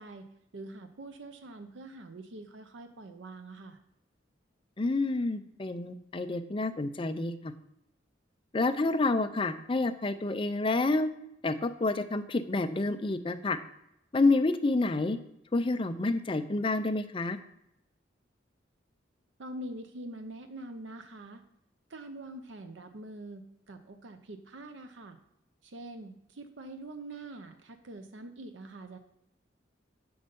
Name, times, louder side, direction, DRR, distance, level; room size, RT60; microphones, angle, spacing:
voice 1, 0.0-3.8 19.4-21.4 21.9-25.2 25.6-29.0, right 2 dB, 85° right, 8 dB, 0.7 m, -44 dB
voice 2, 4.8-7.5 8.5-11.1 11.4-13.6 14.1-15.2 15.5-17.4, left 2 dB, 30° left, 9 dB, 0.5 m, -28 dB
7.9 x 5.4 x 5.2 m, 0.81 s
head